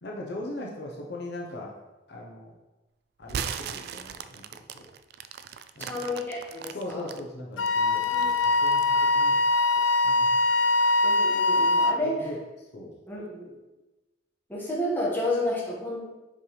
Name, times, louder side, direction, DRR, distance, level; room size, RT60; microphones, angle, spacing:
voice 1, 0.0-1.8 2.1-2.5 3.2-4.9 5.8-6.0 6.7-9.4 10.0-10.3 12.0-13.0, left 1 dB, 65° left, -2 dB, 0.9 m, -39 dB
sound 1, 3.2-7.2 7.7-8.9, right 8 dB, 60° right, 0.3 m, -37 dB
voice 2, 5.8-7.1 8.1-8.4 11.0-12.3 13.1-13.5 14.5-16.1, left 1 dB, 10° left, -6 dB, 1.6 m, -31 dB
Wind instrument woodwind instrument, 7.6-12.0, left 2 dB, 85° left, 0.3 m, -22 dB
5.5 x 5.2 x 3.3 m, 1.1 s
head